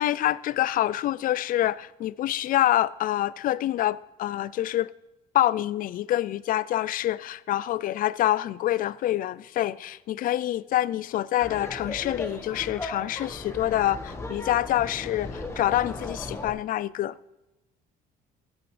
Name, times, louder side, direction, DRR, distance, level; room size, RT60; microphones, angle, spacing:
voice 1, 0.0-4.9 5.3-17.1, left 13 dB, 55° left, 0.4 m, -26 dB
Laughter, 11.4-16.5, left 2 dB, 15° left, 1.5 m, -37 dB
14.5 x 9.6 x 3.3 m
cardioid pair, 110°, 17 cm